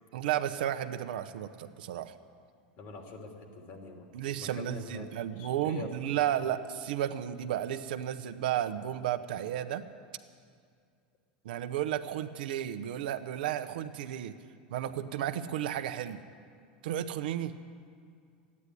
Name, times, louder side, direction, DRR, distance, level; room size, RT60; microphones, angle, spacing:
voice 1, 0.1-2.1 4.1-9.8 11.4-14.4 14.7-16.2 16.8-17.5, right 11 dB, 75° right, 10 dB, 0.8 m, -33 dB
voice 2, 2.8-4.1 4.4-6.2, left 3 dB, 55° left, 2 dB, 2.9 m, -44 dB
13.5 x 9.7 x 9.9 m, 2.2 s
hypercardioid pair, 105°, 5 cm